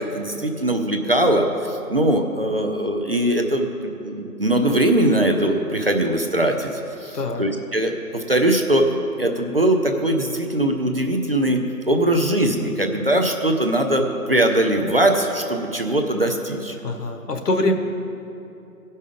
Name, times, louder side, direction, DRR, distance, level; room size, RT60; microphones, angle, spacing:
voice 1, 0.0-8.9 9.2-16.8, right 1 dB, 40° right, 4 dB, 0.5 m, -21 dB
voice 2, 7.1-7.4 16.8-17.7, left 2 dB, 85° left, 5 dB, 1.3 m, -23 dB
15.0 x 5.4 x 5.0 m, 2.8 s
hypercardioid pair, 170°, 46 cm